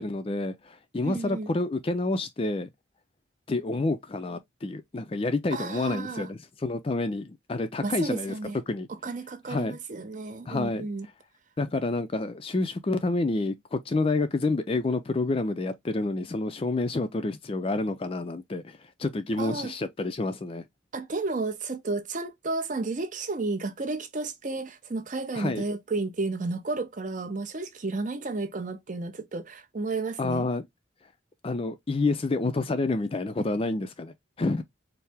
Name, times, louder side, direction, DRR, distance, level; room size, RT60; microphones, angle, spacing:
voice 1, 0.0-2.7 3.5-8.3 8.7-8.9 9.5-9.8 10.5-10.9 11.6-20.7 25.3-25.6 30.2-30.6 31.4-34.6, left 2 dB, 30° left, 0.4 m, -29 dB
voice 2, 1.0-1.5 5.5-6.3 7.8-8.6 9.0-11.1 19.4-19.7 20.9-30.5, right 3 dB, 40° right, 0.6 m, -32 dB
4.5 x 2.0 x 3.4 m
head